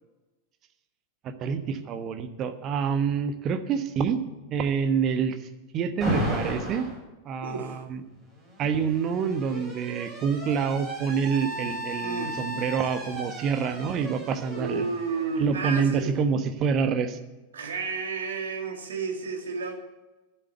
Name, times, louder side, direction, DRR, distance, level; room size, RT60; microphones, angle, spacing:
voice 1, 1.2-4.2 4.5-5.4 5.7-6.9 7.2-8.0 8.6-14.8 15.4-17.2, right 6 dB, 35° right, 10 dB, 1.1 m, -27 dB
Alarm, 6.0-7.0 8.2-15.9, equal, 15° right, 5.7 m, -35 dB
voice 2, 7.4-7.8 12.0-12.4 14.6-16.1 17.5-19.7, right 4 dB, 65° right, 3 dB, 2.2 m, -32 dB
11.5 x 7.8 x 8.1 m, 1.1 s
figure-of-eight pair, 90°, 0 cm